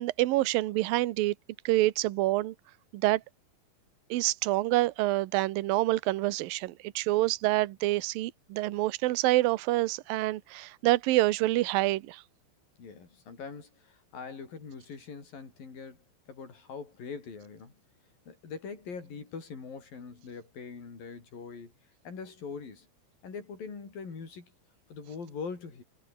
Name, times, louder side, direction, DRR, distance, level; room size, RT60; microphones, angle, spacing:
voice 1, 0.0-1.4 1.7-2.5 2.9-3.2 4.1-12.2, right 17 dB, 75° right, 2.2 m, -27 dB
voice 2, 12.8-17.8 18.3-21.7 22.0-22.9 23.2-24.5 24.9-25.8, left 5 dB, 50° left, 7.4 m, -42 dB
omnidirectional pair, 5.3 m